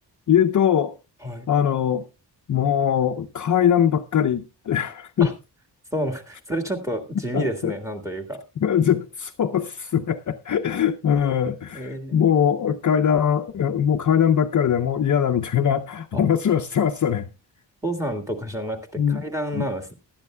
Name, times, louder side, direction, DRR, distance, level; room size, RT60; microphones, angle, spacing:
voice 1, 0.3-0.9 1.5-2.1 2.5-5.3 7.3-7.7 8.6-17.3 19.0-19.2 19.5-19.6, left 8 dB, 45° left, 0.6 m, -21 dB
voice 2, 5.9-8.4 11.7-12.4 16.1-16.2 17.8-19.9, right 1 dB, 5° right, 1.8 m, -29 dB
19.0 x 11.5 x 2.2 m
wide cardioid pair, 145°, 42 cm